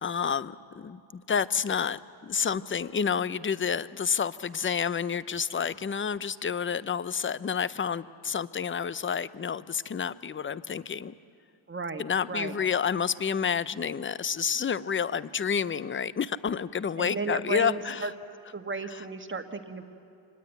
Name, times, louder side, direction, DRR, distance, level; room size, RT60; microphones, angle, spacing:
voice 1, 0.0-11.1 12.0-18.1 18.9-19.0, left 7 dB, 25° left, 17 dB, 0.5 m, -29 dB
voice 2, 11.7-12.0 12.3-12.6 17.0-18.1 18.5-19.8, right 3 dB, 25° right, 7 dB, 1.4 m, -34 dB
25.0 x 19.5 x 9.2 m, 2.7 s
wide cardioid pair, 120°, 46 cm